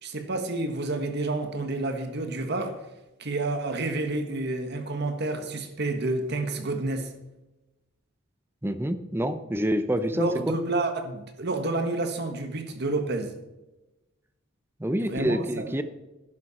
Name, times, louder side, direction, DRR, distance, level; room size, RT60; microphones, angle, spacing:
voice 1, 0.0-2.8 3.2-7.1 10.1-13.3 15.0-15.8, right 2 dB, 60° right, 6 dB, 1.6 m, -29 dB
voice 2, 8.6-10.3 14.8-15.8, equal, 10° right, 10 dB, 0.7 m, -27 dB
12.5 x 10.5 x 4.3 m, 1.0 s
head